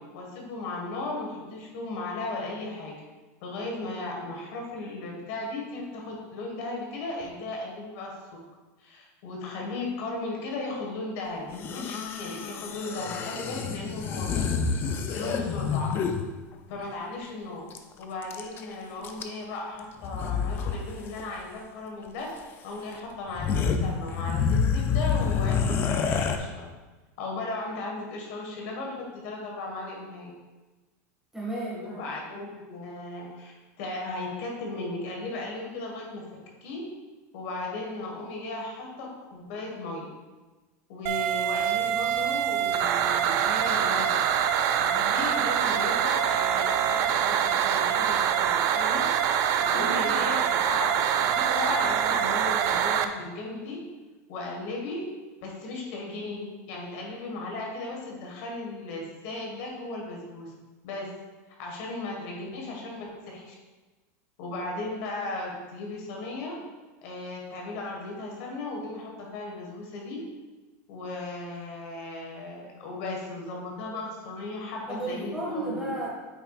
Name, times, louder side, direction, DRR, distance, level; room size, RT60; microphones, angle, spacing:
voice 1, 0.0-2.9 3.4-8.2 8.8-14.5 15.1-15.9 16.7-17.6 18.0-22.3 22.6-25.8 26.0-26.7 27.2-30.3 31.8-36.2 36.6-36.8 37.3-40.0 40.9-44.2 44.8-49.0 49.6-53.8 54.3-55.0 55.4-60.5 60.8-61.1 61.6-63.5 64.4-66.6 67.0-70.2 70.9-75.8, left 2 dB, 55° left, -1 dB, 1.7 m, -36 dB
sound 1, 11.5-16.3 17.7-17.8 18.0-18.6 19.0-19.5 20.0-20.8 21.0-21.2 22.4-22.5 22.9-23.0 23.3-26.4, left 6 dB, 25° left, 0.5 m, -28 dB
voice 2, 31.3-32.0 49.6-50.3 74.9-76.1, right 2 dB, 5° right, -6 dB, 1.8 m, -33 dB
sound 2, 41.1-53.1, right 9 dB, 40° right, 0.4 m, -25 dB
8.5 x 5.8 x 2.5 m, 1.2 s
supercardioid pair, 155°, 8 cm